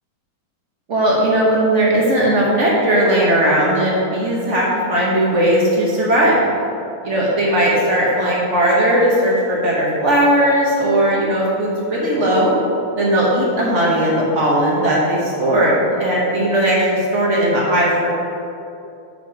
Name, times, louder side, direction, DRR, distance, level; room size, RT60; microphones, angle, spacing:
voice 1, 0.9-6.5 7.0-12.5 13.0-15.7 16.0-18.1, right 1 dB, 50° right, -4 dB, 1.0 m, -17 dB
6.0 x 4.9 x 4.7 m, 2.7 s
omnidirectional pair, 2.4 m